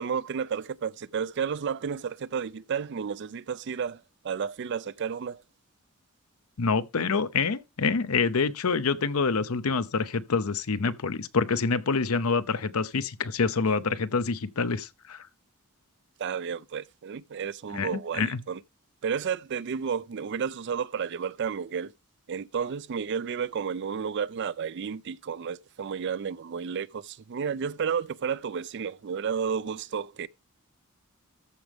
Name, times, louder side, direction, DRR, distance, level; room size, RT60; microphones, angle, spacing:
voice 1, 0.0-5.4 16.2-18.6 19.0-21.9 22.3-30.3, right 6 dB, 55° right, 0.4 m, -32 dB
voice 2, 6.6-15.2 17.7-18.4, left 4 dB, 80° left, 0.7 m, -27 dB
14.0 x 5.0 x 3.5 m
head